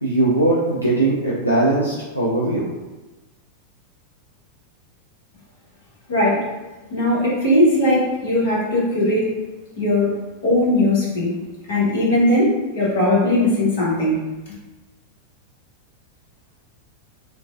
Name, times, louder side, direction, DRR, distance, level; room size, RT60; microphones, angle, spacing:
voice 1, 0.0-2.7, right 2 dB, 85° left, -7 dB, 0.4 m, -20 dB
voice 2, 6.1-6.4 6.9-9.3 9.8-10.1 10.4-11.4 11.7-14.2, left 1 dB, 55° left, -6 dB, 1.1 m, -19 dB
3.2 x 2.2 x 2.4 m, 1.1 s
figure-of-eight pair, 90°, 0 cm